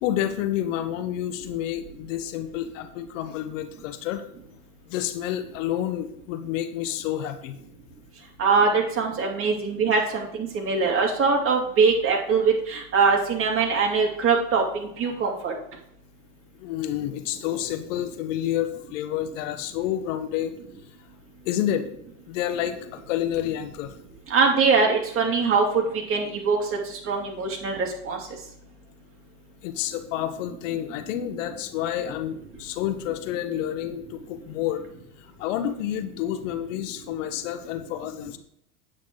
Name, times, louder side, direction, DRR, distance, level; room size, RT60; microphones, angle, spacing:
voice 1, 0.0-4.2 4.9-7.6 16.6-20.8 21.4-21.9 22.3-23.9 29.6-34.8 35.2-38.4, left 11 dB, 60° left, 10 dB, 1.1 m, -29 dB
voice 2, 8.4-15.5 24.3-26.6 27.1-28.2, right 5 dB, 30° right, 0 dB, 2.6 m, -22 dB
9.0 x 8.4 x 3.9 m, 0.72 s
hypercardioid pair, 125°, 44 cm